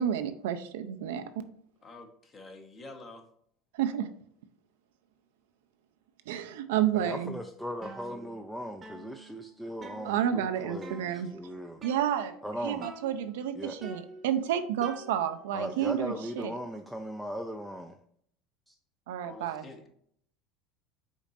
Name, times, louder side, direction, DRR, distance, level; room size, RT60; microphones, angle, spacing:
voice 1, 0.0-1.5 3.7-4.1 6.3-7.3 10.0-11.3 11.8-12.4 12.6-16.6 19.1-19.7, right 10 dB, 80° right, 9 dB, 0.4 m, -30 dB
voice 2, 1.8-3.3 8.0-8.3 19.2-19.9, left 2 dB, 30° left, 4 dB, 1.0 m, -48 dB
voice 3, 6.9-11.8 12.4-12.9 13.5-13.8 15.5-18.0 18.7-18.8, equal, ahead, 4 dB, 0.4 m, -38 dB
sound 1, 7.8-8.5 8.8-10.5 10.8-11.4 11.8-12.5 12.8-13.4 13.8-15.5, right 3 dB, 30° right, 0.8 m, -48 dB
5.2 x 4.0 x 2.5 m, 0.65 s
hypercardioid pair, 90°, 0 cm